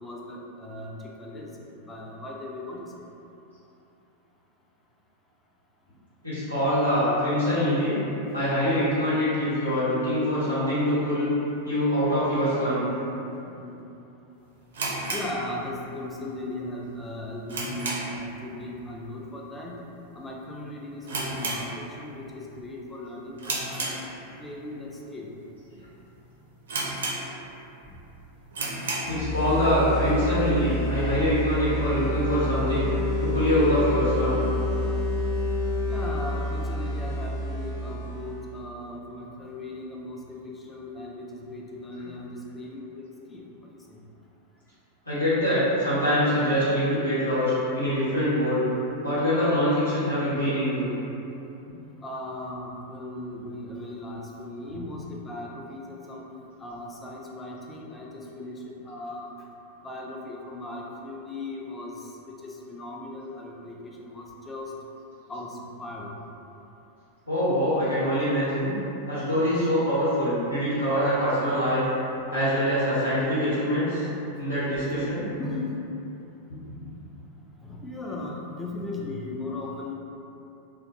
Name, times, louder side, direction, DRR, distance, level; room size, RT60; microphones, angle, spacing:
voice 1, 0.0-2.9 13.5-13.7 15.1-19.7 20.1-23.9 24.4-25.3 27.8-28.0 31.0-31.3 35.9-44.0 52.0-56.2 56.6-59.3 59.8-61.9 62.2-64.7 65.3-66.2 74.0-74.1 75.4-75.9 77.6-79.9, left 2 dB, 15° left, -2 dB, 0.4 m, -37 dB
voice 2, 6.2-8.0 8.3-11.3 11.6-12.8 29.0-32.9 33.2-34.4 41.9-42.0 45.0-48.6 49.0-50.9 67.3-68.7 69.1-71.9 72.3-74.1 74.4-75.2, equal, 85° left, -15 dB, 1.3 m, -24 dB
sound 1, 14.7-16.1 16.3-16.4 17.0-18.3 18.6-18.9 19.2-19.3 20.0-20.2 20.5-20.6 21.0-22.2 22.6-22.9 23.4-24.5 25.1-25.2 25.8-25.9 26.1-26.2 26.7-27.6 28.0-28.1 28.5-29.2, right 2 dB, 65° right, 0.4 m, -32 dB
sound 2, 29.1-38.6, left 1 dB, 40° left, 1.0 m, -28 dB
2.4 x 2.2 x 2.6 m, 2.9 s
figure-of-eight pair, 90°, 0 cm